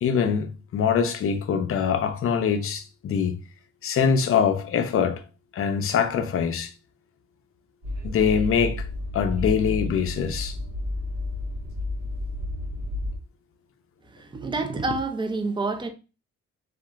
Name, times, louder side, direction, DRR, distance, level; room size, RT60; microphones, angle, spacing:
voice 1, 0.0-3.4 3.8-5.2 5.5-6.7 8.0-8.9 9.1-10.6, left 7 dB, 45° left, 0.5 m, -23 dB
Train, 7.8-13.2, left 2 dB, 70° right, 1.0 m, -31 dB
voice 2, 14.0-15.9, right 3 dB, 15° right, 0.4 m, -28 dB
2.8 x 2.4 x 2.3 m
cardioid pair, 90°, 30 cm